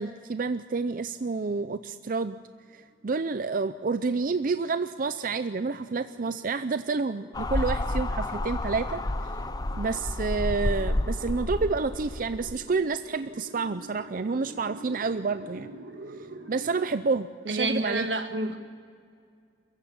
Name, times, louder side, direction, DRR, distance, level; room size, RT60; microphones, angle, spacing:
voice 1, 0.0-2.4 2.7-9.0 9.8-15.7 16.5-18.1, right 4 dB, 50° right, 11 dB, 0.5 m, -29 dB
sound 1, 2.5-16.8, right 1 dB, 70° right, 2.0 m, -48 dB
sound 2, 7.3-12.6, left 1 dB, 20° left, 0.6 m, -30 dB
voice 2, 17.5-18.6, right 2 dB, 90° right, 7 dB, 1.8 m, -28 dB
23.0 x 15.0 x 8.7 m, 2.2 s
head